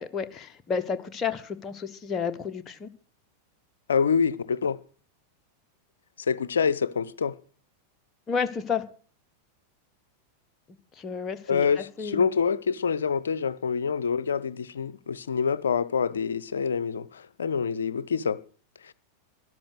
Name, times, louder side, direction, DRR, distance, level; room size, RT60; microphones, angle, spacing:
voice 1, 0.0-2.9 8.3-8.9 11.0-12.3, left 6 dB, 25° left, 1.2 m, -31 dB
voice 2, 3.9-4.8 6.3-7.4 11.5-18.4 18.8-18.9, left 6 dB, 70° left, 0.7 m, -26 dB
13.0 x 11.0 x 6.5 m
figure-of-eight pair, 90°, 0 cm